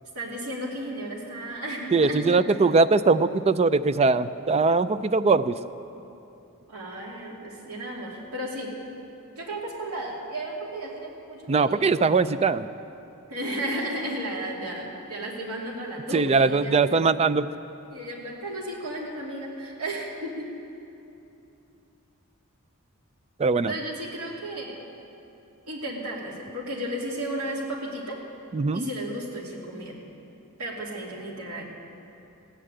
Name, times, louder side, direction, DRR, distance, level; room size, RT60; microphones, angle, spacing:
voice 1, 0.1-2.5 6.7-8.7 9.4-12.1 13.3-16.8 17.9-20.5 23.7-24.8 25.7-28.2 28.7-30.0 30.6-31.7, right 1 dB, 85° right, -3 dB, 2.9 m, -34 dB
voice 2, 1.9-5.6 11.5-12.7 16.1-17.5 23.4-23.7 28.5-28.9, right 4 dB, 30° right, 14 dB, 0.4 m, -21 dB
15.5 x 10.0 x 8.8 m, 2.8 s
head